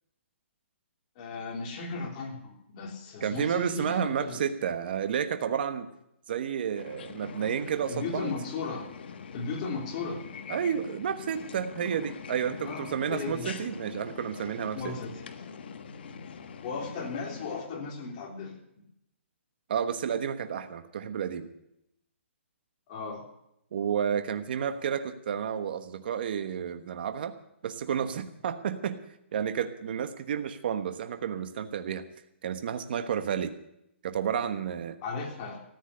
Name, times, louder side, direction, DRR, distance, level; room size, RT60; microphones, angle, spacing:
voice 1, 1.1-4.4 7.9-8.9 9.3-10.2 12.6-13.5 14.7-15.1 16.6-18.6 22.9-23.2 35.0-35.6, left 4 dB, 30° left, 1 dB, 3.4 m, -36 dB
voice 2, 3.2-5.9 6.3-8.3 10.5-14.9 19.7-21.5 23.7-27.3 27.6-29.0 29.3-32.0 32.4-33.5 34.0-35.0, right 8 dB, 50° right, 9 dB, 1.2 m, -31 dB
sound 1, 6.7-17.6, left 6 dB, 55° left, 1.5 m, -43 dB
14.0 x 9.3 x 9.7 m, 0.78 s
hypercardioid pair, 160°, 7 cm